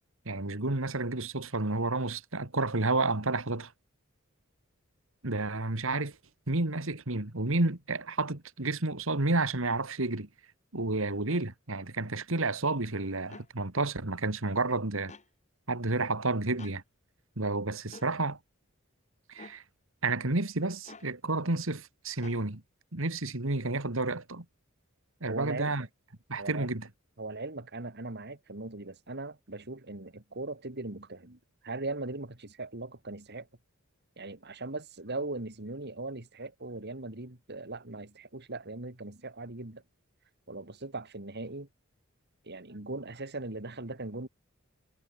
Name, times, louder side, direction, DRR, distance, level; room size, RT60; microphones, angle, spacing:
voice 1, 0.3-3.7 5.2-6.1 6.5-10.3 10.7-15.1 15.7-16.8 17.4-18.4 19.3-19.6 20.0-22.6 22.9-24.4 25.2-25.9 26.3-26.9, right 2 dB, 70° right, 2.4 m, -30 dB
sound 1, 11.3-11.5 13.2-13.5 15.1-15.3 16.6-16.8 17.9-18.1 19.3-19.6 20.8-21.1 22.2-22.4, left 3 dB, 35° left, 4.1 m, -49 dB
voice 2, 25.2-25.9 26.4-26.7 27.2-33.5 34.2-39.8 40.5-41.7 42.4-44.3, right 2 dB, 50° right, 2.6 m, -39 dB
head